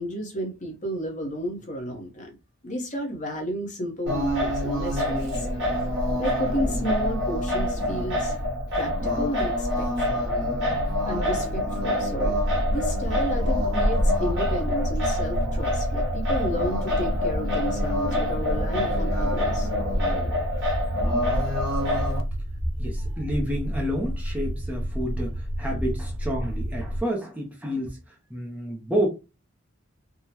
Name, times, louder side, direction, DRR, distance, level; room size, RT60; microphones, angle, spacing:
voice 1, 0.0-2.4 2.6-5.5 6.2-8.3 8.7-10.2 11.0-12.4 12.7-19.7, equal, 35° left, 0.8 m, -32 dB
Singing, 4.1-22.2, left 1 dB, 60° right, 1.2 m, -26 dB
sound 1, 12.3-27.0, equal, 90° right, 0.5 m, -31 dB
voice 2, 22.8-29.1, equal, 5° right, 0.5 m, -30 dB
3.6 x 2.0 x 2.8 m
head